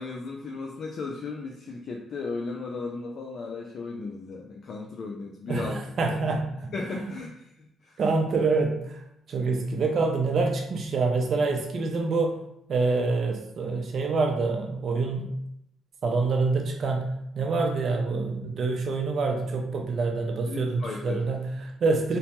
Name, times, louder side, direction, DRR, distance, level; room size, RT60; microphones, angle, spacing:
voice 1, 0.0-5.8 6.1-6.4 6.7-8.0 20.5-21.2, left 3 dB, 60° left, 0 dB, 0.3 m, -36 dB
voice 2, 5.5-6.7 8.0-12.4 12.7-15.3 16.0-22.2, right 3 dB, 55° right, 2 dB, 0.4 m, -26 dB
2.7 x 2.2 x 2.9 m, 0.78 s
cardioid pair, 90°, 0 cm